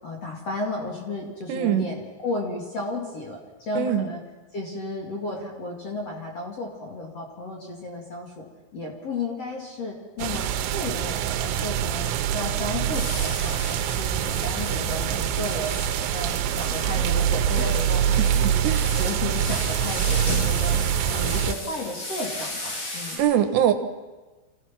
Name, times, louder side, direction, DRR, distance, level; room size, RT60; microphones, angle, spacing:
voice 1, 0.0-4.2 4.5-8.5 8.7-12.1 12.3-15.7 16.0-18.7 19.0-20.7 21.0-23.2, left 2 dB, 40° left, -1 dB, 2.5 m, -33 dB
voice 2, 1.5-1.9 3.8-4.1 18.2-18.3 18.6-18.9 23.2-23.7, right 10 dB, 70° right, 7 dB, 2.9 m, -22 dB
sound 1, 10.2-21.5, right 10 dB, 90° right, 3.6 m, -25 dB
sound 2, 12.9-23.2, left 1 dB, 80° left, 9.8 m, -35 dB
27.0 x 16.0 x 6.0 m, 1.2 s
omnidirectional pair, 5.8 m